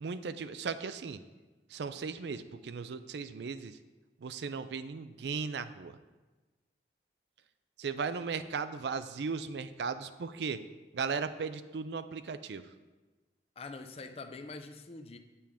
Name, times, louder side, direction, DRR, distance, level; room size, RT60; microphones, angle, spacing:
voice 1, 0.0-1.2 1.7-3.8 4.2-5.9 7.8-10.6 10.9-12.6, right 5 dB, 75° right, 11 dB, 0.4 m, -36 dB
voice 2, 13.6-15.2, left 3 dB, 35° left, 8 dB, 0.5 m, -44 dB
8.9 x 6.8 x 3.5 m, 1.2 s
head